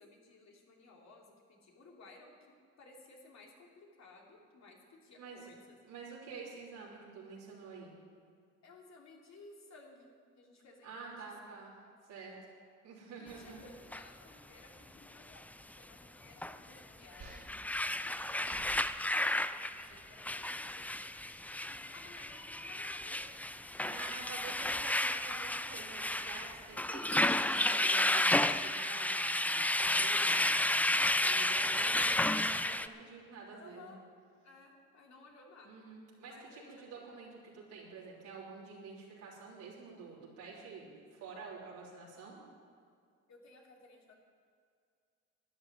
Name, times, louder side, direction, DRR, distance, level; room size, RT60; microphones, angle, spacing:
voice 1, 0.0-5.8 8.6-10.1 10.4-11.1 11.4-11.5 11.8-11.9 13.2-21.1 21.7-23.3 33.6-34.0 34.4-35.8 36.2-37.0 43.3-44.1, left 3 dB, 60° left, 0 dB, 3.0 m, -58 dB
voice 2, 5.2-5.5 5.9-7.9 10.8-11.7 12.1-12.3 12.8-13.6 23.8-30.7 31.2-33.9 35.6-42.4, right 4 dB, 90° right, -6 dB, 3.6 m, -48 dB
sound 1, 13.9-14.0 16.4-16.6 17.2-32.9, left 1 dB, 5° left, 0.4 m, -32 dB
sound 2, 17.2-19.5 19.7-20.2 21.2-21.5 22.9-23.2, right 3 dB, 50° right, 1.6 m, -56 dB
12.5 x 10.0 x 7.7 m, 2.3 s
cardioid pair, 90°, 30 cm